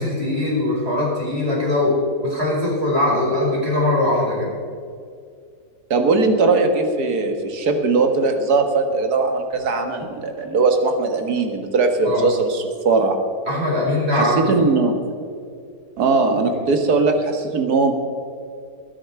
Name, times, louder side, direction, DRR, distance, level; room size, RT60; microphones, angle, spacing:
voice 1, 0.0-2.0 2.2-4.5 12.0-12.3 13.5-14.5 16.5-16.7, left 1 dB, 40° right, -4 dB, 5.1 m, -21 dB
voice 2, 5.9-13.2 14.1-15.1 16.0-17.9, right 3 dB, 80° right, 5 dB, 2.0 m, -19 dB
20.0 x 10.0 x 4.7 m, 2.3 s
omnidirectional pair, 1.7 m